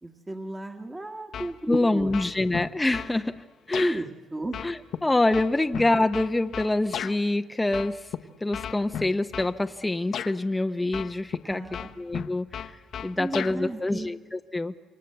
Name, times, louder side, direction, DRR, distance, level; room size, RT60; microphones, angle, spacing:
voice 1, 0.0-2.2 3.8-4.6 11.4-11.9 13.1-14.1, right 2 dB, 20° right, 4 dB, 1.8 m, -34 dB
sound 1, 1.3-1.8 2.1-3.1 3.7-3.9 4.5-7.2 7.7-8.2 8.5-9.5 10.1-10.3 10.9-11.4 11.7-13.6, left 9 dB, 70° left, 1.1 m, -34 dB
voice 2, 1.7-4.0 4.6-4.8 5.0-8.1 8.4-11.6 12.0-12.6 13.0-14.7, left 2 dB, 15° left, 7 dB, 0.8 m, -26 dB
27.5 x 23.5 x 8.0 m, 1.5 s
cardioid pair, 90°, 0 cm